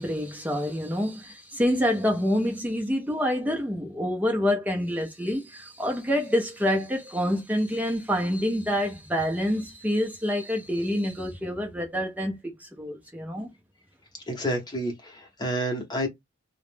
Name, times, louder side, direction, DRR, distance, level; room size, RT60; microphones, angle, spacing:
voice 1, 0.0-13.5, equal, 5° right, 0.5 m, -27 dB
voice 2, 14.3-16.1, equal, 20° left, 0.8 m, -29 dB
2.4 x 2.0 x 3.1 m
head